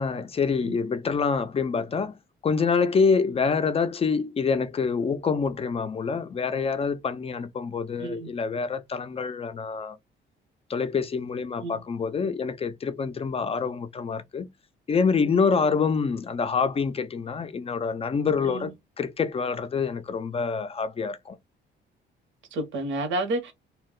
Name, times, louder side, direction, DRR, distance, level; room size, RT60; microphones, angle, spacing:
voice 1, 0.0-2.2 2.4-10.0 10.7-14.5 14.9-21.4, left 5 dB, 30° left, 0.4 m, -26 dB
voice 2, 8.0-8.3 11.6-11.8 18.4-18.7 22.5-23.5, right 1 dB, 70° right, 0.9 m, -30 dB
2.2 x 2.2 x 3.6 m
cardioid pair, 90°, 20 cm